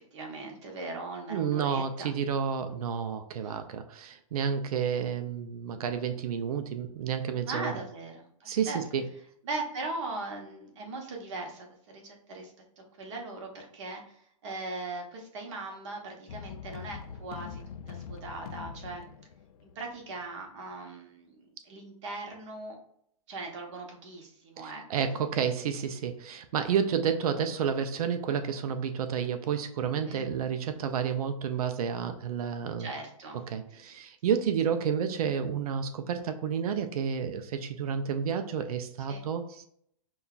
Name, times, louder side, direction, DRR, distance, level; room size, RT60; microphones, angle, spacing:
voice 1, 0.0-2.1 3.4-3.6 7.4-8.8 9.4-14.2 14.4-19.1 19.6-22.7 23.3-24.8 30.0-30.2 32.8-33.4 39.1-39.2, right 2 dB, 55° right, 1 dB, 1.0 m, -39 dB
voice 2, 1.3-7.7 8.4-9.0 24.6-32.9 33.5-39.6, right 7 dB, 80° right, 8 dB, 0.4 m, -30 dB
sound 1, 16.3-20.3, left 7 dB, 85° left, 0.4 m, -43 dB
5.4 x 2.3 x 2.3 m, 0.69 s
hypercardioid pair, 155°, 19 cm